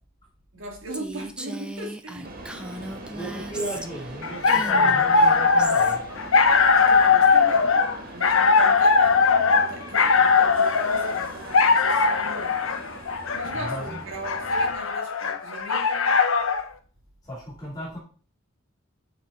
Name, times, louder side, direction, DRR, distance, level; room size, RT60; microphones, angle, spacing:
voice 1, 0.5-2.8 3.5-3.7 6.6-7.7 8.1-12.6 13.3-16.3, right 1 dB, 65° right, 3.3 m, -39 dB
Female speech woman speaking, 0.9-4.1 4.4-6.0, equal, 5° right, 0.7 m, -37 dB
sound 1, 2.2-14.7, right 1 dB, 45° right, 2.0 m, -41 dB
voice 2, 3.1-6.0 13.5-14.0 17.2-18.0, equal, 20° left, 3.7 m, -35 dB
sound 2, 4.2-16.7, left 4 dB, 75° left, 1.1 m, -20 dB
9.4 x 7.5 x 4.3 m
head